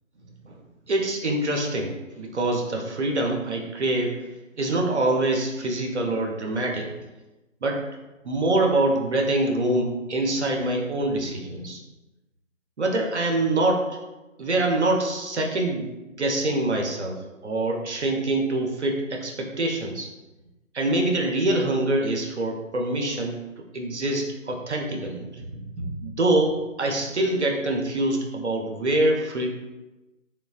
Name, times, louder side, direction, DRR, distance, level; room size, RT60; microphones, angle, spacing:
voice 1, 0.9-4.3 4.6-6.9 7.6-7.8 8.2-11.8 12.8-14.0 14.4-20.1 20.7-29.5, right 2 dB, 60° right, 1 dB, 0.5 m, -25 dB
3.2 x 2.1 x 2.3 m, 1.1 s
figure-of-eight pair, 165°, 39 cm